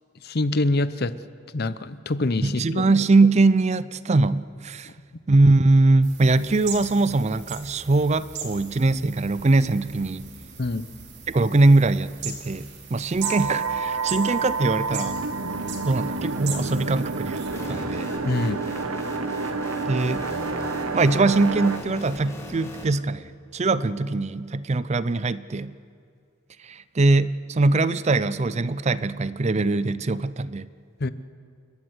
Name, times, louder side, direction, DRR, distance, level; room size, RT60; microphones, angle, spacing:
voice 1, 0.2-1.1 1.5-2.9 10.6-10.9 18.2-18.6 31.0-31.1, left 2 dB, 45° left, 15 dB, 0.7 m, -25 dB
voice 2, 2.4-4.9 5.3-10.3 11.3-15.2 15.8-18.1 19.9-20.2 20.9-25.7 26.6-30.7, right 2 dB, 30° right, 16 dB, 0.5 m, -22 dB
sound 1, 6.0-17.7, right 6 dB, 50° right, 3.0 m, -39 dB
sound 2, 13.2-21.8, right 4 dB, 85° right, 1.4 m, -29 dB
sound 3, 17.5-22.9, left 1 dB, 15° left, 2.5 m, -38 dB
29.5 x 12.5 x 8.0 m, 2.3 s
head